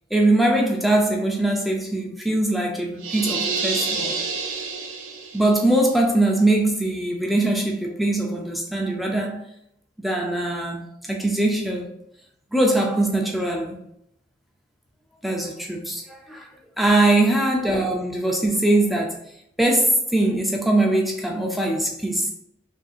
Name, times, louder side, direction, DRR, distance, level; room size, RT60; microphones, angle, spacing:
voice 1, 0.1-4.2 5.3-9.4 10.0-11.9 12.5-13.8 15.2-16.5 16.8-19.2 19.6-22.3, right 1 dB, ahead, 0.4 m, -22 dB
sound 1, 3.0-5.6, right 4 dB, 80° right, 0.6 m, -28 dB
5.2 x 2.7 x 2.4 m
head